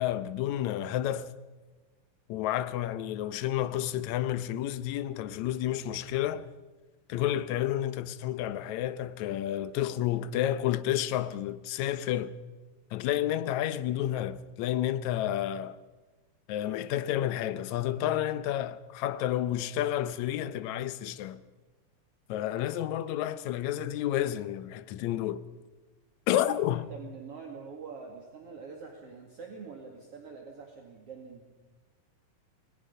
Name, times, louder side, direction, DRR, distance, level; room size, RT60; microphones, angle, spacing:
voice 1, 0.0-1.3 2.3-6.5 7.1-12.3 12.9-15.8 16.5-21.4 22.3-25.4 26.3-26.9, left 12 dB, 70° left, 1.9 m, -30 dB
voice 2, 26.6-31.4, right 5 dB, 50° right, 2.9 m, -45 dB
28.5 x 20.5 x 5.4 m
omnidirectional pair, 3.8 m